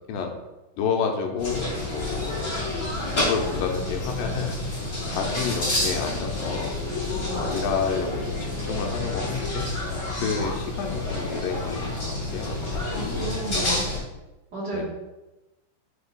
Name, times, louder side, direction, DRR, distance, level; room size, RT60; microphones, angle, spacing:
voice 1, 0.8-2.8 3.1-4.6 5.1-6.8 7.3-9.7 10.2-13.2 13.5-13.8 14.7-14.8, left 6 dB, 80° left, 3 dB, 2.3 m, -30 dB
sound 1, 1.4-14.0, left 2 dB, 30° left, 1.7 m, -29 dB
voice 2, 12.9-13.8 14.5-14.8, right 2 dB, 60° right, -6 dB, 1.1 m, -32 dB
5.2 x 4.3 x 5.2 m, 1.0 s
omnidirectional pair, 4.3 m